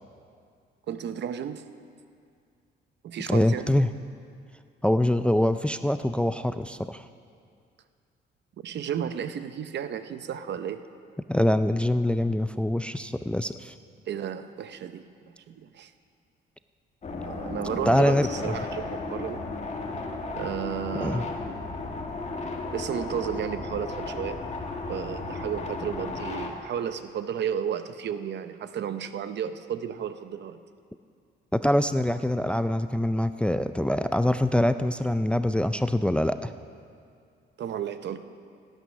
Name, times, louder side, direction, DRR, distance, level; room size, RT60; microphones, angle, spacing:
voice 1, 0.9-1.6 3.0-3.8 8.6-10.8 14.1-15.9 17.3-19.4 20.3-21.3 22.7-24.4 24.9-30.6 37.6-38.2, right 8 dB, 60° right, 11 dB, 0.7 m, -33 dB
voice 2, 3.3-3.9 4.8-7.1 11.3-13.7 17.9-18.5 21.0-21.2 31.5-36.5, left 1 dB, 5° left, 11 dB, 0.4 m, -24 dB
sound 1, 17.0-26.5, left 3 dB, 35° left, 1.7 m, -34 dB
17.0 x 9.1 x 6.2 m, 2.3 s
cardioid pair, 90°, 20 cm